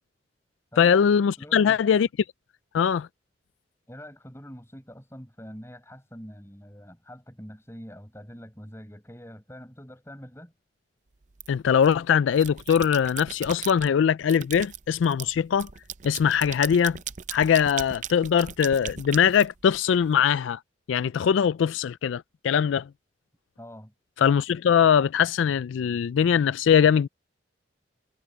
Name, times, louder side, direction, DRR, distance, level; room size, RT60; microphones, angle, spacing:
voice 1, 0.8-2.1 2.7-3.1 11.5-15.7 16.0-17.0 17.3-20.6 20.9-22.9 24.2-27.1, left 7 dB, 90° left, 0.3 m, -21 dB
voice 2, 1.4-1.8 3.9-10.5 23.6-23.9, equal, 15° left, 6.9 m, -44 dB
sound 1, 11.4-11.9 12.3-13.9 14.3-20.1, right 9 dB, 40° right, 0.5 m, -38 dB
head